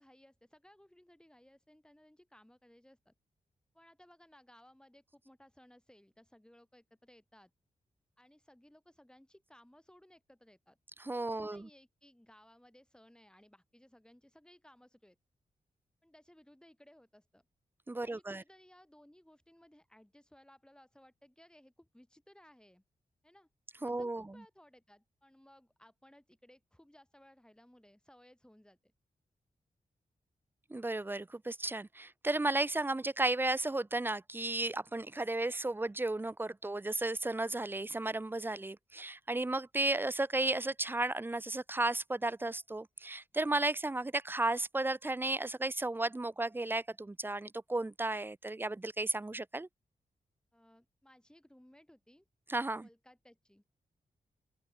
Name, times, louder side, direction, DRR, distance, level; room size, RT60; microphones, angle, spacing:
voice 1, 0.0-3.1 3.7-7.5 8.2-10.8 11.2-15.2 16.0-17.4 18.0-22.8 23.2-23.5 23.8-28.9 50.5-52.3 52.8-53.6, left 1 dB, 5° left, 8.0 m, -61 dB
voice 2, 11.0-11.7 17.9-18.4 23.8-24.2 30.7-49.7 52.5-52.9, right 2 dB, 15° right, 0.5 m, -34 dB
open air
cardioid pair, 85°, 14 cm